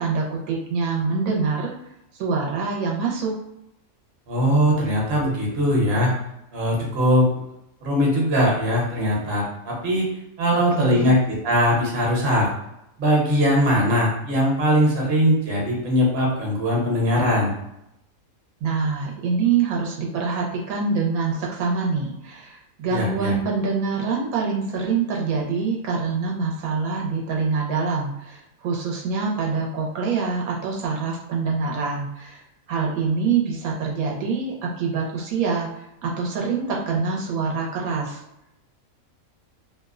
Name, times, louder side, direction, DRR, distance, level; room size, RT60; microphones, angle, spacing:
voice 1, 0.0-1.7 2.1-3.4 10.5-11.1 18.6-32.4 32.7-38.2, right 5 dB, 85° right, -2 dB, 1.0 m, -25 dB
voice 2, 4.3-6.1 6.5-7.4 7.8-10.1 10.4-12.5 13.0-17.5 22.9-23.3, equal, 55° right, -3 dB, 0.9 m, -20 dB
2.7 x 2.0 x 2.3 m, 0.84 s
omnidirectional pair, 1.5 m